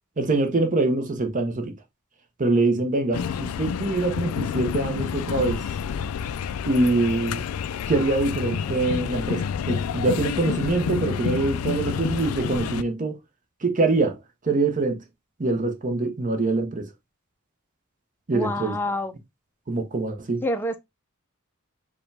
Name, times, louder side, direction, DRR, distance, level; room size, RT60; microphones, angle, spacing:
voice 1, 0.2-1.7 2.4-5.6 6.7-7.4 7.9-13.2 13.6-14.2 14.4-15.0 15.4-16.9 18.3-18.7 19.7-20.4, right 2 dB, 35° right, 0.8 m, -24 dB
sound 1, 3.1-12.8, left 7 dB, 80° left, 0.3 m, -29 dB
voice 2, 18.3-19.1 20.4-20.8, left 1 dB, 10° left, 0.5 m, -27 dB
4.9 x 2.3 x 3.3 m
head